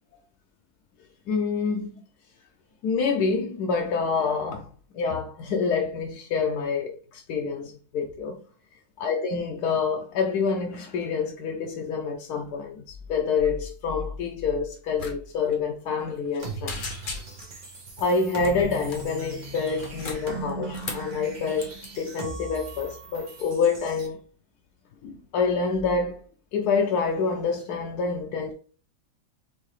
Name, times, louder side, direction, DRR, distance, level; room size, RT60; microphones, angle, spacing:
voice 1, 1.3-1.9 2.8-4.7 4.9-8.4 9.0-16.9 18.0-24.2 25.0-26.2 26.5-28.5, left 5 dB, 90° left, 1.2 m, -27 dB
sound 1, 15.0-15.2 15.4-15.6 16.0-16.4 16.7-17.6 18.4-19.1 19.7-21.1 21.6-21.9, left 4 dB, 45° left, 0.7 m, -37 dB
sound 2, 16.4-24.1, right 3 dB, 35° right, 1.0 m, -39 dB
4.7 x 3.6 x 3.2 m
omnidirectional pair, 1.6 m